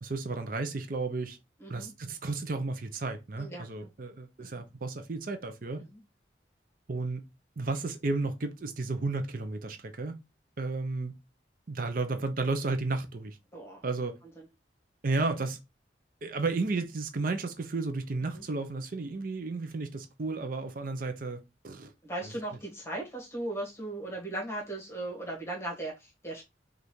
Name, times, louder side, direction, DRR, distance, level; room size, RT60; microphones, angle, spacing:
voice 1, 0.0-1.4 1.7-5.8 6.9-7.2 7.6-10.2 10.6-11.1 11.7-13.4 13.8-14.2 15.0-15.6 16.2-21.9, right 3 dB, 50° right, 0.6 m, -33 dB
voice 2, 1.6-1.9 3.4-3.6 4.4-4.6 5.9-6.0 13.5-13.8 14.4-14.5 18.3-18.4 22.0-26.4, right 1 dB, 15° left, 1.4 m, -38 dB
5.3 x 2.5 x 3.1 m
head